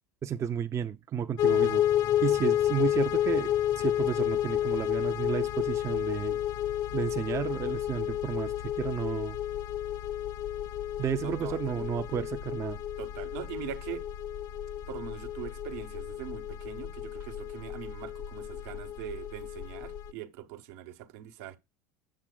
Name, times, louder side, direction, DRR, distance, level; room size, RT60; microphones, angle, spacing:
voice 1, 0.2-1.8 2.2-6.4 6.9-9.4 11.0-12.8, right 8 dB, 35° right, 0.5 m, -32 dB
sound 1, 1.4-20.1, left 11 dB, 50° left, 0.7 m, -31 dB
voice 2, 11.2-11.8 13.0-14.0 14.9-21.6, right 12 dB, 75° right, 1.1 m, -42 dB
8.2 x 7.5 x 2.3 m
hypercardioid pair, 90°, 8 cm